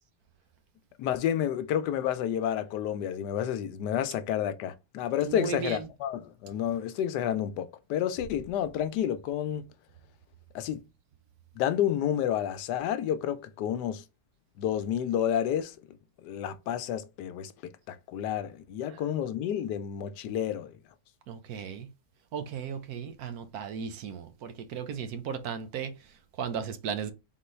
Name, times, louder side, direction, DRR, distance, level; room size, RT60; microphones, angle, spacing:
voice 1, 1.0-9.7 10.5-10.8 11.6-14.0 14.6-15.8 16.2-20.7, left 10 dB, 85° left, 1.2 m, -30 dB
voice 2, 5.2-5.9 18.9-19.0 21.3-21.9 22.3-27.1, right 7 dB, 70° right, 1.1 m, -36 dB
3.9 x 3.7 x 3.1 m
omnidirectional pair, 1.8 m